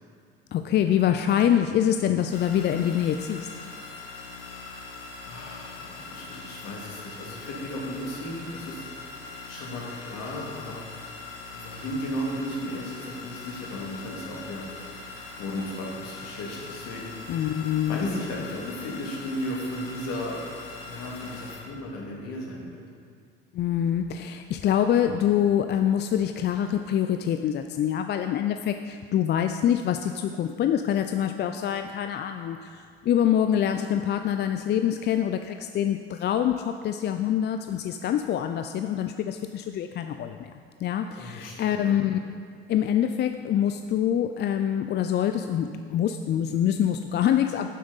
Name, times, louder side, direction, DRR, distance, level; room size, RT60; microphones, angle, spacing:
voice 1, 0.5-3.5 17.3-18.0 23.5-40.5 40.8-42.2 42.7-47.7, left 10 dB, 35° left, 7 dB, 0.4 m, -25 dB
sound 1, 2.3-21.6, left 3 dB, 85° left, 1.2 m, -41 dB
voice 2, 5.2-8.9 9.5-10.8 11.5-14.6 15.4-17.4 17.9-20.4 20.8-22.8 41.2-42.0, left 1 dB, 60° left, -2 dB, 2.3 m, -35 dB
9.3 x 7.8 x 4.0 m, 2.2 s
hypercardioid pair, 65°, 30 cm